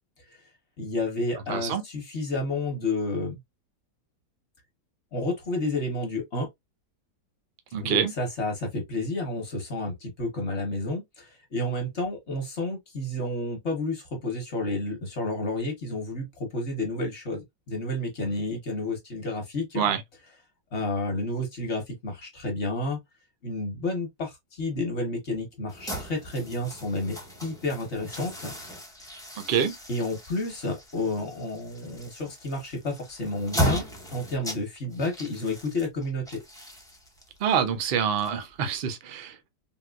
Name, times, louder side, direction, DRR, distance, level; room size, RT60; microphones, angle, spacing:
voice 1, 0.8-3.4 5.1-6.5 7.8-19.9 20.7-23.0 23.4-28.5 29.9-33.8 34.1-36.4, left 2 dB, 50° left, 1.1 m, -30 dB
voice 2, 1.5-1.8 7.7-8.1 19.8-20.0 29.4-29.7 37.4-39.5, right 7 dB, 90° right, 0.5 m, -26 dB
sound 1, 25.7-38.8, equal, 5° left, 0.3 m, -36 dB
3.8 x 2.4 x 2.2 m
omnidirectional pair, 1.8 m